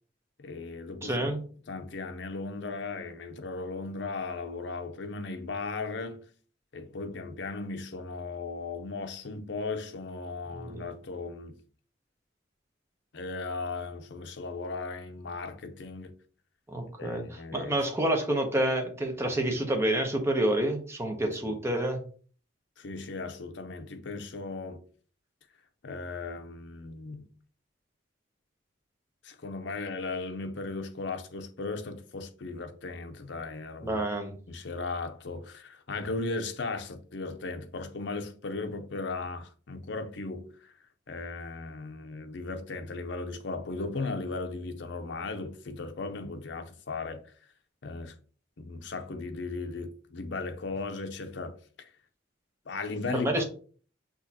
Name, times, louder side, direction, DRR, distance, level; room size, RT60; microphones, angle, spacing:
voice 1, 0.4-1.3 1.7-6.2 6.7-11.6 13.1-16.1 17.0-17.9 21.3-21.6 22.8-24.8 25.8-27.3 29.2-34.0 34.5-40.7 41.1-47.2 47.8-48.1 48.6-51.6 52.7-53.3, left 3 dB, 70° left, 0.6 m, -37 dB
voice 2, 1.0-1.4 10.6-10.8 16.7-22.0 33.8-34.4 53.1-53.4, right 1 dB, 15° right, 0.8 m, -28 dB
6.2 x 2.8 x 2.8 m
head